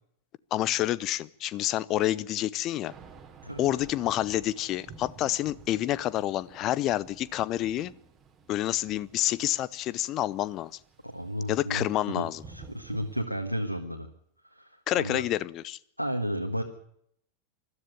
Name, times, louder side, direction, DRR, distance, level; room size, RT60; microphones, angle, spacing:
voice 1, 0.5-2.9 3.6-7.9 8.5-10.7 11.5-12.4 14.9-15.8, left 14 dB, 35° left, 0.7 m, -28 dB
Thunder / Rain, 2.9-13.2, right 4 dB, 20° right, 2.8 m, -52 dB
voice 2, 11.0-12.2 12.5-14.1 15.0-15.2 16.0-16.6, equal, 90° right, 1.5 m, -32 dB
22.0 x 13.0 x 9.4 m
figure-of-eight pair, 90°, 0 cm